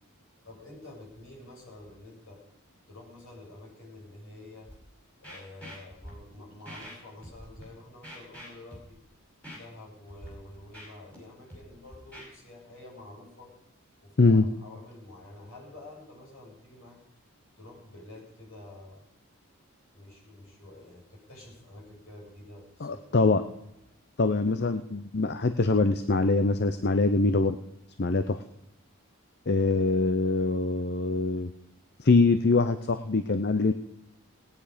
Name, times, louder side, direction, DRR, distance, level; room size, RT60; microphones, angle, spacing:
voice 1, 0.4-2.4 2.9-4.7 5.2-9.0 9.5-13.5 14.0-17.0 17.6-19.1 19.9-23.3 28.0-28.2, left 2 dB, 70° left, -3 dB, 7.2 m, -49 dB
Scratching (performance technique), 4.7-4.8 5.2-6.1 6.7-6.9 7.2-7.6 8.0-8.9 9.4-9.6 10.1-10.3 10.5-11.2 11.5-12.3, equal, 5° left, 5.4 m, -45 dB
voice 2, 22.8-23.4 24.2-27.6 28.0-28.4 29.5-31.5 32.0-33.7, left 3 dB, 50° left, 9 dB, 0.6 m, -23 dB
18.5 x 9.9 x 5.1 m, 0.83 s
head